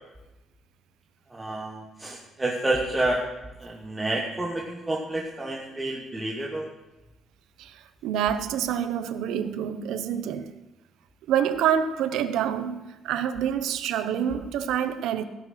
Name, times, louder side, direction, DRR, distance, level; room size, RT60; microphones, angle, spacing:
voice 1, 1.3-3.2 3.6-6.7, right 2 dB, 10° right, 1.1 m, -29 dB
voice 2, 7.6-10.5 11.3-15.2, right 9 dB, 90° right, 0.8 m, -27 dB
16.5 x 5.8 x 6.3 m
cardioid pair, 155°, 0 cm